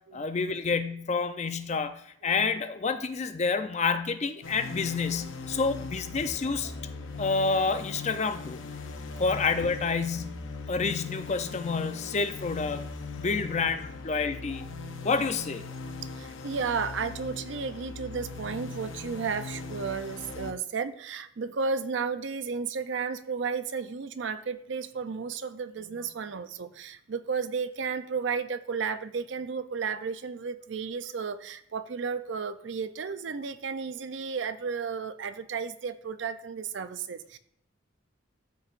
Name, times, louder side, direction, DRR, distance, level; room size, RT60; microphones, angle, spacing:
voice 1, 0.1-6.7 7.2-8.6 9.2-10.4 10.7-12.8 13.2-14.7 15.0-15.6, left 4 dB, 35° left, 9 dB, 0.5 m, -28 dB
sound 1, 4.4-20.5, left 4 dB, 80° left, 0.7 m, -40 dB
voice 2, 16.2-37.4, right 5 dB, 70° right, 12 dB, 0.5 m, -33 dB
13.0 x 4.7 x 2.5 m, 0.69 s
head